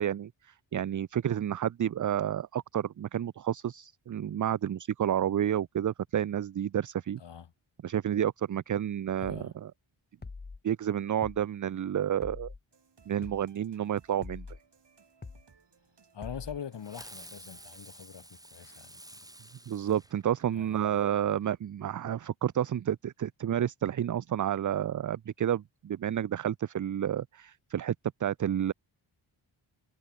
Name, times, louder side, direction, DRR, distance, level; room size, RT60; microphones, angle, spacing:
voice 1, 0.0-7.2 7.8-9.7 10.6-12.5 13.1-14.5 19.7-27.9 28.2-28.7, right 10 dB, 40° right, 0.5 m, -30 dB
voice 2, 9.2-9.5 16.1-19.2 20.5-21.0, left 8 dB, 60° left, 1.4 m, -44 dB
sound 1, 9.2-9.4 10.2-10.6 11.2-11.4 12.2-12.6 13.2-13.4 14.2-14.6 15.2-15.4 16.2-16.6, left 4 dB, 20° left, 0.8 m, -43 dB
sound 2, 12.7-17.9, right 5 dB, 60° right, 4.5 m, -64 dB
Fireworks, 16.8-20.7, right 1 dB, 5° right, 2.8 m, -50 dB
cardioid pair, 75°, 48 cm